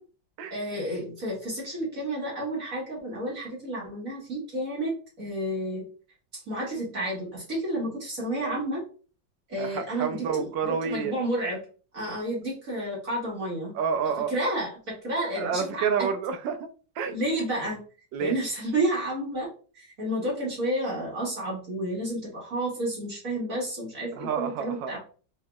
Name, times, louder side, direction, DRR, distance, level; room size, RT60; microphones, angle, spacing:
voice 1, 0.5-4.9 5.2-5.8 6.5-8.8 9.5-11.6 11.9-13.8 14.3-15.8 17.1-17.8 18.2-19.5 19.8-25.0, right 1 dB, 45° right, 1.9 m, -30 dB
voice 2, 9.6-11.2 13.7-14.4 15.4-16.7 17.0-17.2 18.1-18.3 24.1-25.0, right 6 dB, 75° right, 1.3 m, -29 dB
4.6 x 4.0 x 2.3 m
omnidirectional pair, 2.1 m